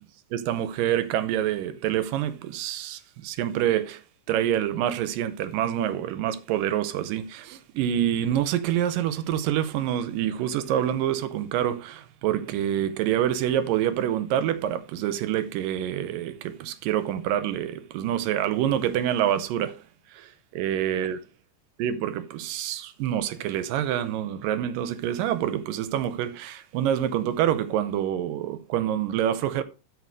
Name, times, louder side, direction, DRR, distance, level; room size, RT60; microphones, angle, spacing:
voice 1, 0.3-4.0 4.3-19.8 20.1-20.3 20.5-21.2 21.8-29.6, right 11 dB, 85° right, 2.4 m, -26 dB
12.5 x 4.9 x 4.7 m
omnidirectional pair, 4.0 m